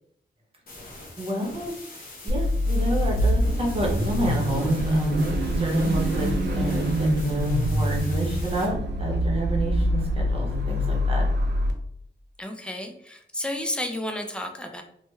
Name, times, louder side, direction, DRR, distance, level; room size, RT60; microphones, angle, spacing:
sound 1, 0.7-8.7, left 2 dB, 50° left, 0.9 m, -44 dB
voice 1, 1.2-1.8 2.2-5.2 5.6-11.3, right 1 dB, 30° right, -1 dB, 0.8 m, -29 dB
Car / Idling / Accelerating revving vroom, 2.3-11.7, equal, 65° right, 0.5 m, -25 dB
voice 2, 12.4-14.8, left 1 dB, 5° left, 4 dB, 0.3 m, -32 dB
3.3 x 2.1 x 3.1 m, 0.69 s
wide cardioid pair, 175°, 19 cm